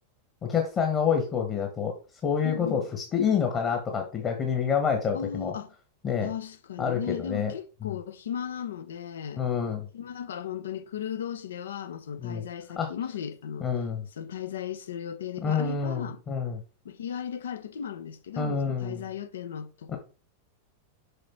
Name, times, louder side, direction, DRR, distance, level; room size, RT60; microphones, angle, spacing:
voice 1, 0.4-1.9 2.2-5.5 6.0-6.3 6.8-7.5 7.8-8.0 9.4-9.9 12.2-12.4 12.8-12.9 13.6-14.0 15.4-16.6 18.4-19.0 19.9-20.0, left 6 dB, 25° left, 1.5 m, -27 dB
voice 2, 2.4-2.9 5.1-5.7 6.2-9.4 9.9-13.7 14.2-16.2 16.8-20.0, left 8 dB, 65° left, 0.8 m, -36 dB
6.7 x 5.2 x 4.5 m
figure-of-eight pair, 90°, 0 cm